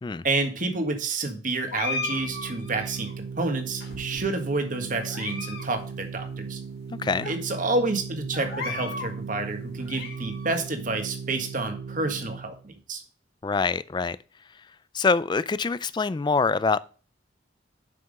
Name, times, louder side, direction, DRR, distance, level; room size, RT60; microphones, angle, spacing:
voice 1, 0.2-6.6 7.2-13.0, right 3 dB, 45° right, 1.6 m, -29 dB
sound 1, 1.7-3.1 3.8-4.5 5.0-5.7 5.9-6.0 6.7-6.8 7.2-7.3 8.3-9.1 9.6-10.6, left 3 dB, 55° left, 2.2 m, -35 dB
Organ, 1.9-12.7, right 5 dB, 85° right, 0.6 m, -37 dB
voice 2, 13.4-14.2 14.9-16.8, left 4 dB, 25° left, 0.3 m, -24 dB
7.7 x 5.8 x 5.4 m
head